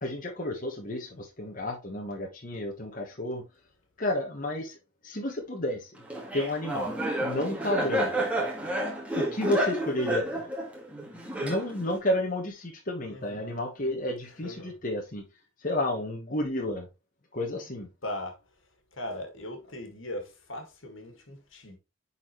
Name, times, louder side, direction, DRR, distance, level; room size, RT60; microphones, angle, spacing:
voice 1, 0.0-3.4 4.0-4.8 5.0-5.9 6.3-6.9 7.2-8.1 9.1-10.4 11.4-15.2 15.6-16.9 17.3-17.9, left 1 dB, 40° left, 1.2 m, -31 dB
Laughter, 6.1-12.0, right 1 dB, 5° right, 1.7 m, -30 dB
voice 2, 13.0-13.6 14.3-14.8 18.0-18.4 18.9-21.8, left 1 dB, 70° left, 1.9 m, -39 dB
9.6 x 4.2 x 3.1 m
head